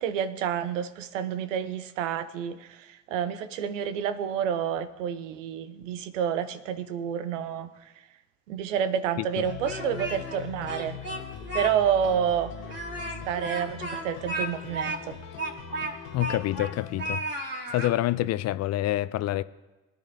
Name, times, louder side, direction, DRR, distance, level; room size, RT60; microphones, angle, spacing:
voice 1, 0.0-7.9 8.5-11.0 11.5-12.5 13.3-15.2, right 8 dB, 75° right, 0.8 m, -29 dB
sound 1, 9.4-17.0, left 7 dB, 70° left, 1.2 m, -41 dB
Speech, 9.4-10.4 10.7-11.7 12.0-12.1 12.6-16.7 17.0-17.9, right 1 dB, 30° right, 2.8 m, -34 dB
voice 2, 16.1-17.2 17.7-19.4, left 15 dB, 45° left, 0.5 m, -27 dB
21.5 x 10.5 x 2.7 m
figure-of-eight pair, 55°, 38 cm